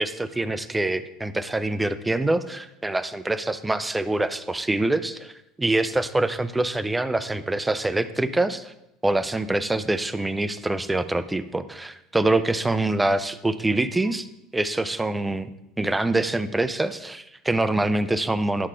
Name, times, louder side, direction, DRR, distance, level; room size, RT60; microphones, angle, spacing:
voice 1, 0.0-5.3 5.6-8.7 9.0-14.3 14.5-15.5 15.8-18.7, right 2 dB, 5° right, 12 dB, 0.3 m, -25 dB
11.0 x 6.6 x 3.7 m, 0.88 s
cardioid pair, 165°, 0 cm